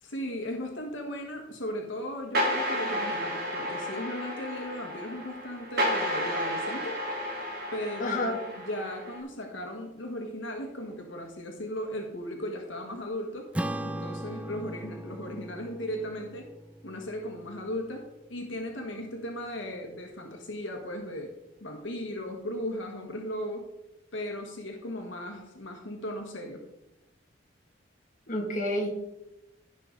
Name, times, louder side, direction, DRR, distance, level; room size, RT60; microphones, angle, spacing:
voice 1, 0.0-7.0 7.7-8.4 8.7-13.5 13.8-16.5 16.8-18.0 18.3-21.3 21.6-23.7 24.1-26.6, left 1 dB, 80° left, 2 dB, 1.5 m, -36 dB
sound 1, 2.3-9.2, equal, 55° right, 2.1 m, -32 dB
voice 2, 8.0-8.4 28.3-28.9, left 1 dB, 45° left, -1 dB, 2.2 m, -29 dB
Acoustic guitar / Strum, 13.5-18.3, right 1 dB, 5° right, 0.3 m, -38 dB
15.5 x 5.9 x 4.0 m, 0.93 s
head